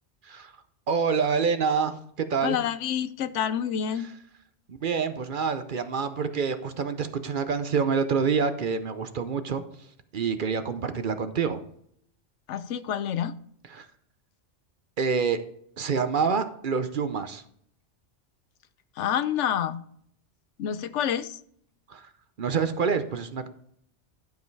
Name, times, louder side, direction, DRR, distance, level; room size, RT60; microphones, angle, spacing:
voice 1, 0.9-2.6 4.0-4.1 4.7-9.6 10.1-11.6 13.7-13.9 15.0-15.4 15.8-17.4 21.9-22.1 22.4-23.5, right 5 dB, 50° right, 0.8 m, -27 dB
voice 2, 2.4-4.1 12.5-13.3 19.0-19.8 20.6-21.4, left 9 dB, 85° left, 1.0 m, -28 dB
12.0 x 5.3 x 4.6 m
omnidirectional pair, 1.2 m